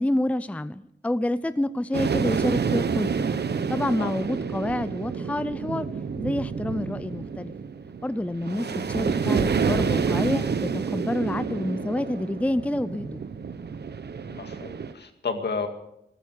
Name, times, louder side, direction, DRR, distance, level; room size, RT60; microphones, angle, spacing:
voice 1, 0.0-3.1 3.7-5.9 6.2-7.5 8.0-13.2, left 1 dB, 5° left, 14 dB, 0.5 m, -28 dB
sound 1, 1.9-14.9, right 6 dB, 65° right, 1.0 m, -28 dB
voice 2, 8.5-8.9 14.2-15.7, left 4 dB, 65° left, 6 dB, 2.2 m, -32 dB
15.0 x 14.0 x 6.5 m, 0.82 s
cardioid pair, 70°, 18 cm